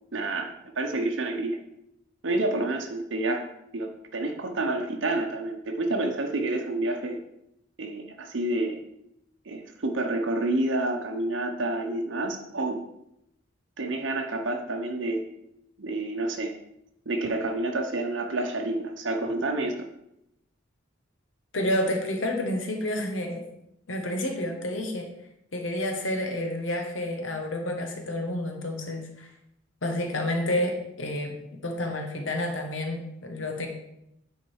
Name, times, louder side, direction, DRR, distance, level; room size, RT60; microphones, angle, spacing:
voice 1, 0.1-1.6 2.2-3.5 3.7-7.2 7.8-8.8 9.5-12.8 13.8-15.2 15.8-16.5 17.1-19.9, right 2 dB, 70° right, 4 dB, 0.8 m, -29 dB
voice 2, 21.5-23.4 23.9-25.1 25.5-29.3 29.8-31.3 31.6-33.7, left 1 dB, 85° left, 3 dB, 1.3 m, -29 dB
9.3 x 4.0 x 4.7 m, 0.81 s
head